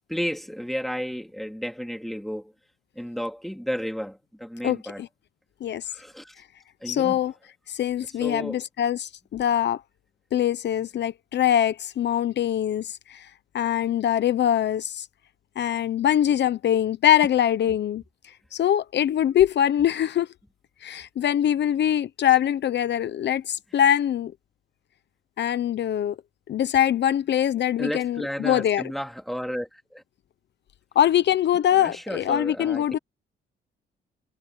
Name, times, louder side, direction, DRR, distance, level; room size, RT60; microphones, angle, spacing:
voice 1, 0.1-2.5 2.9-5.0 5.9-6.3 6.8-7.2 8.1-8.6 17.7-17.8 27.8-30.0 31.7-32.9, equal, ahead, 2.9 m, -32 dB
voice 2, 6.9-7.3 7.7-9.8 10.3-13.3 13.5-15.1 15.6-20.3 20.8-24.3 25.4-26.2 26.5-28.8 30.9-33.0, left 10 dB, 60° left, 0.9 m, -23 dB
cardioid pair, 90°, 20 cm